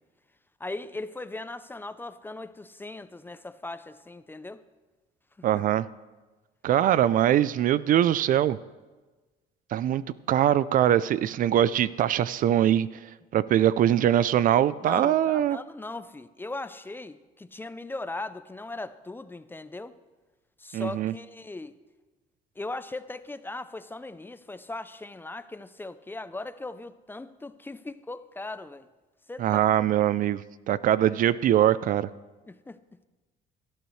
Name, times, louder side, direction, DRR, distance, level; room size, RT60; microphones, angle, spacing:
voice 1, 0.6-4.6 5.4-5.7 14.8-19.9 20.6-21.8 22.6-28.9 29.3-29.6 32.5-32.8, left 2 dB, 10° left, 13 dB, 0.4 m, -39 dB
voice 2, 5.4-5.8 6.6-8.6 9.7-10.0 10.3-12.9 13.3-15.6 20.7-21.1 29.4-30.4 30.7-32.1, right 11 dB, 55° right, 18 dB, 0.4 m, -22 dB
18.0 x 12.5 x 3.2 m, 1.2 s
cardioid pair, 110°, 17 cm